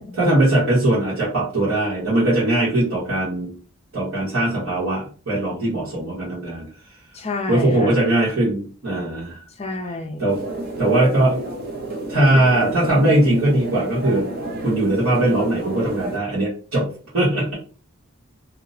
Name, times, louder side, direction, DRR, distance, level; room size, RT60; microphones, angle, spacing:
voice 1, 0.1-3.5 3.9-6.7 7.5-9.4 10.2-10.4 10.8-11.4 12.1-14.3 14.6-16.9 17.1-17.5, right 1 dB, 70° right, -10 dB, 1.2 m, -20 dB
voice 2, 7.1-8.0 9.6-10.3, left 2 dB, 25° left, 5 dB, 0.4 m, -29 dB
sound 1, 10.3-16.2, right 2 dB, 45° right, 0.6 m, -30 dB
2.7 x 2.1 x 2.5 m, 0.39 s
head